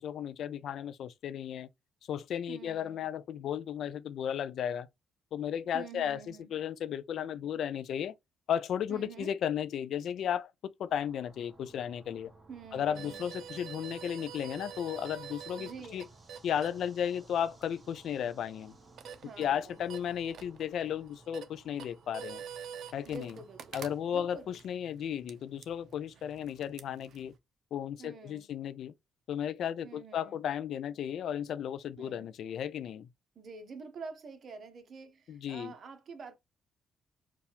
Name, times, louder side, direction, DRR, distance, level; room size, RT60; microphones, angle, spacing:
voice 1, 0.0-1.7 2.1-4.9 5.3-8.1 8.5-12.3 12.7-16.1 16.4-18.7 19.4-22.4 22.9-23.4 23.7-27.3 27.7-28.9 29.3-33.1 35.3-35.7, left 9 dB, 70° left, 0.4 m, -34 dB
voice 2, 2.5-3.1 5.7-6.5 8.9-9.4 12.5-13.3 15.6-16.1 19.2-19.8 23.0-23.8 24.1-24.8 28.0-28.5 29.8-30.4 32.0-32.3 33.3-36.4, right 5 dB, 55° right, 1.1 m, -47 dB
sound 1, 10.9-24.0, right 2 dB, 20° right, 1.4 m, -60 dB
sound 2, 12.9-27.4, right 8 dB, 70° right, 0.6 m, -48 dB
4.6 x 2.5 x 3.5 m
cardioid pair, 90°, 0 cm